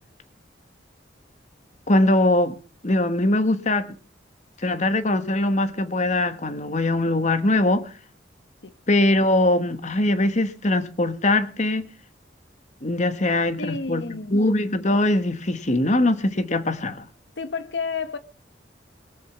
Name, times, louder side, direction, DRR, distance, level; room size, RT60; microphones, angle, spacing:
voice 1, 1.9-2.6 2.8-3.9 4.6-7.9 8.9-11.9 12.8-14.0 14.3-17.0, left 1 dB, 40° left, 1.6 m, -21 dB
voice 2, 13.6-14.4 17.4-18.2, left 4 dB, 80° left, 1.2 m, -30 dB
21.5 x 7.5 x 7.3 m
head